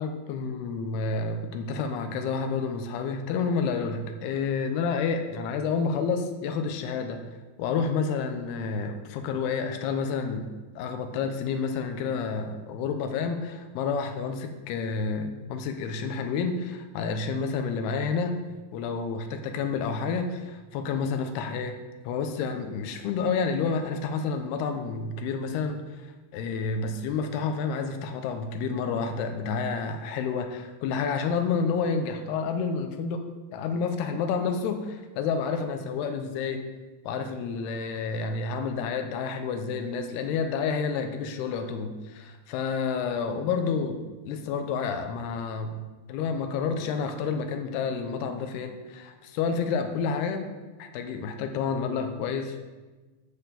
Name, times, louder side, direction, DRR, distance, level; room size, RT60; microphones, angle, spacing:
voice 1, 0.0-7.3 7.6-10.5 10.8-18.4 18.7-21.7 22.0-25.8 26.3-33.3 33.5-36.6 37.1-44.0 44.3-45.8 46.1-50.5 50.8-52.6, left 5 dB, 75° left, 6 dB, 2.5 m, -29 dB
10.0 x 5.6 x 6.9 m, 1.2 s
omnidirectional pair, 5.4 m